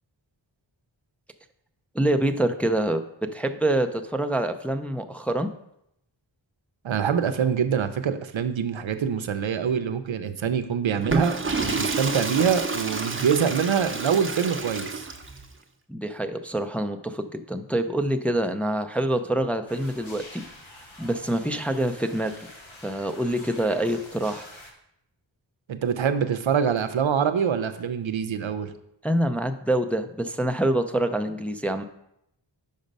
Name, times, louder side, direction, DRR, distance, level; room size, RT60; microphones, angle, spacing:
voice 1, 1.9-3.0 3.3-5.5 15.9-20.4 21.0-22.3 22.8-24.4 29.0-31.8, right 1 dB, 5° left, 6 dB, 0.4 m, -26 dB
voice 2, 6.8-15.1 25.7-28.7, right 7 dB, 85° right, 9 dB, 0.6 m, -25 dB
Water / Toilet flush, 10.9-15.5, right 3 dB, 25° right, 0.7 m, -29 dB
sound 1, 19.7-24.7, left 1 dB, 90° left, 1.3 m, -46 dB
5.4 x 5.1 x 5.3 m, 0.79 s
wide cardioid pair, 55°, 46 cm